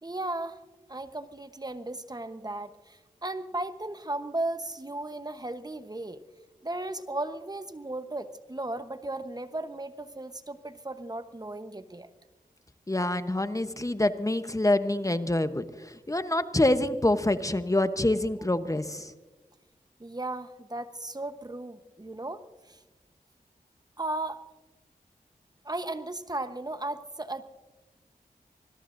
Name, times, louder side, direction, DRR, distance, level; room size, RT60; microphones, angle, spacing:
voice 1, 0.0-0.6 0.9-6.2 6.6-12.1 20.0-22.8 24.0-24.4 25.6-27.4, right 2 dB, 25° right, 10 dB, 1.0 m, -36 dB
voice 2, 12.9-19.1, left 1 dB, 20° left, 10 dB, 0.9 m, -26 dB
25.5 x 20.5 x 2.6 m, 1.2 s
cardioid pair, 45°, 15 cm